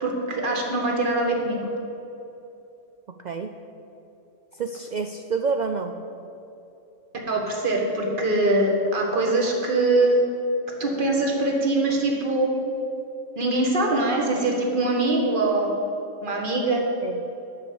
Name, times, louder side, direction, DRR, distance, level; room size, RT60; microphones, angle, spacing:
voice 1, 0.0-1.6 7.3-10.2 10.8-12.5 13.4-15.7 16.2-16.8, right 2 dB, 40° right, 0 dB, 1.6 m, -23 dB
voice 2, 3.1-3.5 4.6-6.0 17.0-17.2, right 4 dB, 80° right, 6 dB, 0.4 m, -28 dB
8.5 x 6.8 x 7.8 m, 2.9 s
omnidirectional pair, 1.3 m